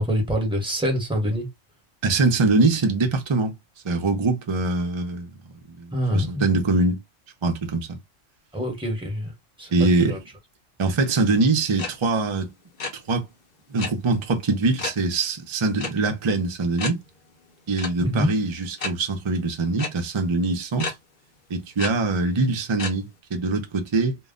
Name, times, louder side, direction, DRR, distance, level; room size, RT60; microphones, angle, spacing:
voice 1, 0.0-1.5 5.9-6.4 8.5-9.3 9.6-9.7 10.0-10.2 18.0-18.3, equal, 5° right, 0.8 m, -25 dB
voice 2, 2.0-3.5 3.8-5.3 5.7-7.0 7.4-8.0 9.7-10.2 10.8-12.5 13.1-13.2 13.7-17.0 17.7-20.9 21.5-24.2, right 3 dB, 45° right, 0.3 m, -23 dB
sound 1, 11.8-11.9 12.2-12.4 12.6-12.9 13.8-13.9 14.8-15.0 15.8-15.9 16.3-16.4 16.8-16.9 17.8-17.9 18.8-18.9 19.8-19.9 20.8-20.9 21.8-21.9 22.8-22.9, left 4 dB, 50° left, 0.7 m, -29 dB
2.2 x 2.1 x 3.5 m
omnidirectional pair, 1.3 m